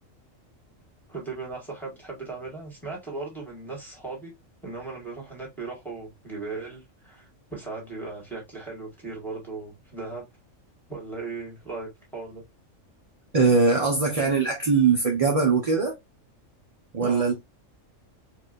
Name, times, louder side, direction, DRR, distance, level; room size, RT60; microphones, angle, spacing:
voice 1, 1.1-4.3 4.6-10.2 10.9-12.4 17.0-17.3, right 3 dB, ahead, 1.7 m, -37 dB
voice 2, 13.3-16.0 16.9-17.4, right 4 dB, 35° right, 0.7 m, -21 dB
4.6 x 2.6 x 2.4 m
omnidirectional pair, 1.3 m